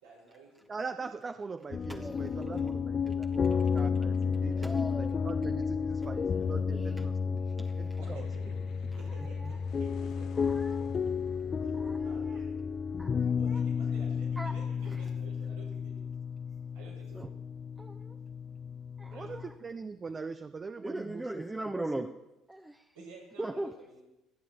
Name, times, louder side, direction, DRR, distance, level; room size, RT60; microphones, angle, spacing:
voice 1, 0.0-0.7 2.4-2.7 3.5-3.8 8.0-10.7 11.6-12.6 13.4-16.1 16.7-17.3 19.1-19.6 20.1-20.2 22.9-24.0, right 3 dB, 85° right, -5 dB, 5.7 m, -52 dB
voice 2, 0.7-7.4 7.8-8.3 19.1-21.4 21.7-22.1, right 4 dB, 30° right, 10 dB, 0.6 m, -42 dB
sound 1, 1.7-19.5, left 6 dB, 35° left, 0.6 m, -32 dB
voice 3, 1.9-2.6 4.6-5.3 6.0-6.9 7.6-8.0 9.2-9.6 10.5-10.9 12.1-12.4 13.0-13.6 14.4-14.5 14.8-15.0 17.1-17.3 17.8-18.2 19.0-19.5 20.8-22.1 22.5-22.8 23.4-23.7, right 1 dB, 15° right, 4 dB, 1.0 m, -40 dB
sound 2, 7.9-14.5, left 9 dB, 60° left, 1.1 m, -54 dB
25.0 x 9.0 x 4.4 m, 0.92 s
hypercardioid pair, 55°, 0 cm